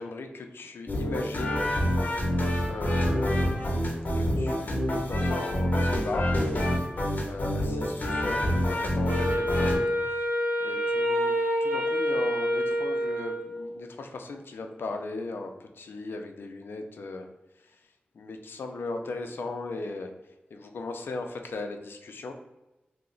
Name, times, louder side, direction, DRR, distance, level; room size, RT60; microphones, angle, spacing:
voice 1, 0.0-1.7 2.7-3.5 4.1-6.3 7.2-9.7 10.6-11.3 11.6-17.3 18.1-20.1 20.5-22.3, left 3 dB, 85° left, 5 dB, 0.4 m, -37 dB
sound 1, 0.9-9.8, equal, 50° left, 0.7 m, -27 dB
Wind instrument woodwind instrument, 9.1-13.7, equal, 60° right, 0.7 m, -27 dB
2.8 x 2.0 x 3.7 m, 1.0 s
wide cardioid pair, 70°, 4 cm